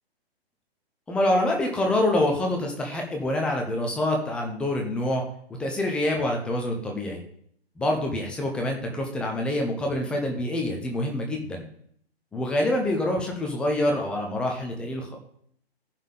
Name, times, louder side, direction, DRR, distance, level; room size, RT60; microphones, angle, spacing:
voice 1, 1.1-5.3 5.6-7.2 7.8-11.6 12.3-15.2, left 1 dB, 5° left, 1 dB, 0.5 m, -26 dB
14.0 x 5.7 x 3.7 m, 0.66 s
hypercardioid pair, 150°, 32 cm